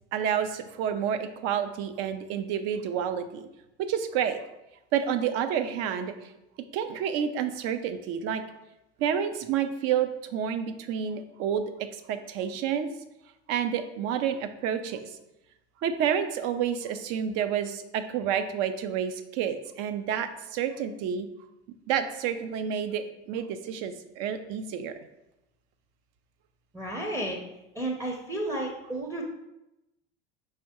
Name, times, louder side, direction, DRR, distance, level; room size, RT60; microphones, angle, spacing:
voice 1, 0.1-3.5 3.8-4.4 4.9-6.3 6.7-8.4 9.0-12.9 13.5-15.1 15.8-21.3 21.9-24.9, right 8 dB, 55° right, 9 dB, 0.5 m, -29 dB
voice 2, 26.7-27.4 27.7-29.2, right 1 dB, 10° right, -1 dB, 0.6 m, -32 dB
4.5 x 3.3 x 2.9 m, 0.92 s
hypercardioid pair, 95°, 30 cm